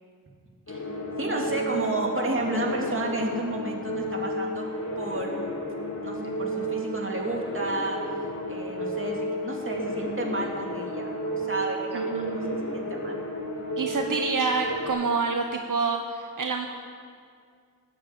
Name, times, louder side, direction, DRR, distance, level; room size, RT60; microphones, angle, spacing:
sound 1, 0.7-14.9, equal, 55° left, 3.8 m, -32 dB
voice 1, 1.2-4.7 4.9-5.4 6.0-8.0 8.5-12.4 12.7-13.1, right 1 dB, 40° right, -1 dB, 2.8 m, -31 dB
voice 2, 11.9-12.6 13.8-16.7, right 4 dB, 75° right, 4 dB, 0.9 m, -27 dB
18.5 x 7.7 x 8.4 m, 2.2 s
wide cardioid pair, 80°, 32 cm